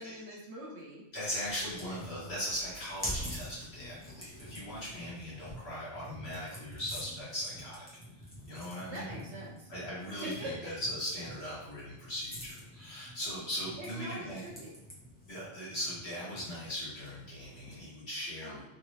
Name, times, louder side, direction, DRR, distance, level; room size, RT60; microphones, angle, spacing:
voice 1, 0.0-1.0 1.6-1.9 8.9-9.7 10.2-10.7 13.8-14.7 18.4-18.6, right 1 dB, 65° right, -2 dB, 1.0 m, -43 dB
voice 2, 1.1-7.9 8.5-9.1 9.7-14.4 15.3-18.6, equal, 55° left, -8 dB, 1.7 m, -39 dB
sound 1, 1.3-17.9, equal, 10° left, 0.7 m, -46 dB
3.2 x 2.6 x 3.0 m, 0.93 s
omnidirectional pair, 1.3 m